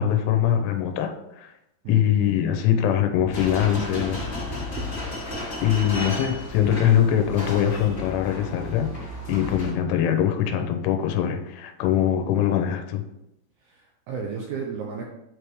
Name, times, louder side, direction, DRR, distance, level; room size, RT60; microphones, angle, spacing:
voice 1, 0.0-1.5 1.9-4.2 5.6-8.9 9.3-13.0, left 10 dB, 85° left, 6 dB, 3.1 m, -22 dB
sound 1, 3.2-3.5 3.9-5.6 5.8-6.4 6.6-6.9 7.2-9.5 9.8-10.3 10.6-10.8 11.2-11.3, right 1 dB, 60° right, 2.7 m, -41 dB
sound 2, 3.3-9.7, left 2 dB, 50° left, 0.7 m, -33 dB
voice 2, 13.6-15.0, right 6 dB, 80° right, -1 dB, 2.3 m, -34 dB
8.2 x 3.4 x 4.7 m, 0.85 s
omnidirectional pair, 5.5 m